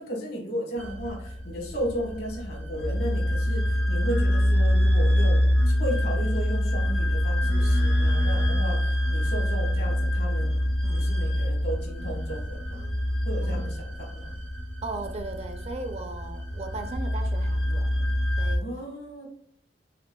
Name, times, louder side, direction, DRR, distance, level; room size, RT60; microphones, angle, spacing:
voice 1, 0.0-12.9 13.2-14.3 18.6-19.2, equal, 60° left, 1.2 m, -35 dB
sound 1, 0.8-18.6, equal, 85° right, 1.1 m, -25 dB
voice 2, 10.8-11.1 13.4-13.6 14.8-18.7, right 3 dB, 35° right, 0.4 m, -37 dB
5.8 x 3.2 x 2.2 m
head